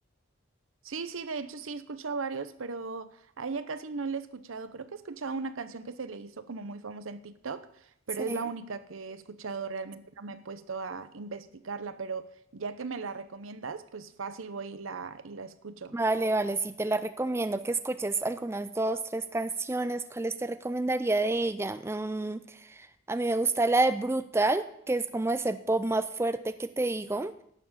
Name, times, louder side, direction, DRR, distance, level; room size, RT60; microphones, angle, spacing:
voice 1, 0.8-7.7 8.1-16.0, right 4 dB, 85° right, 13 dB, 0.8 m, -37 dB
voice 2, 15.9-22.4 22.8-27.3, right 2 dB, 15° right, 11 dB, 0.4 m, -29 dB
11.5 x 7.2 x 7.3 m, 0.72 s
head